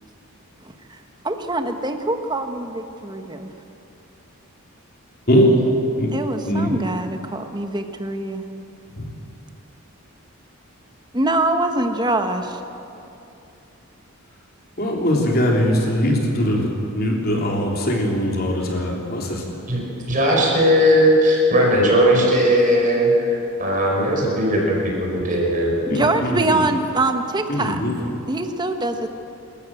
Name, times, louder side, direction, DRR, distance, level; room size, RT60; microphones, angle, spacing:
voice 1, 1.2-3.5 6.1-8.4 11.1-12.6 25.9-27.8 28.3-29.1, right 2 dB, 20° right, 6 dB, 1.2 m, -23 dB
voice 2, 5.3-5.6 6.0-6.1 6.5-6.7 9.0-9.1 14.8-19.6 25.9-26.6 27.5-27.9, equal, 40° left, -1 dB, 3.4 m, -21 dB
voice 3, 20.1-25.8, equal, 35° right, -2 dB, 5.1 m, -18 dB
27.0 x 14.0 x 7.8 m, 2.8 s
head